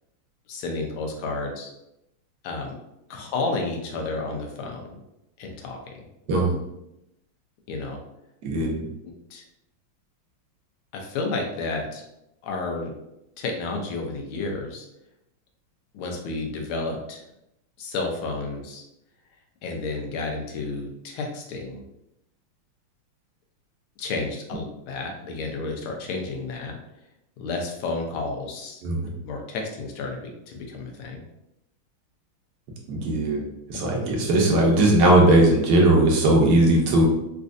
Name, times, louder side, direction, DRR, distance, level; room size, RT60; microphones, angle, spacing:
voice 1, 0.5-1.7 2.4-2.7 3.1-5.0 5.4-6.0 7.7-8.0 9.3-9.4 10.9-12.0 12.4-12.9 13.4-14.8 15.9-17.2 17.8-18.8 19.6-21.8 24.0-26.8 27.4-28.8 29.2-31.2, left 3 dB, 80° left, 2 dB, 1.5 m, -31 dB
voice 2, 6.3-6.6 8.4-8.9 28.8-29.0 32.9-33.4 33.7-37.0, right 1 dB, 65° right, -1 dB, 1.2 m, -18 dB
4.2 x 2.5 x 2.4 m, 0.86 s
omnidirectional pair, 2.3 m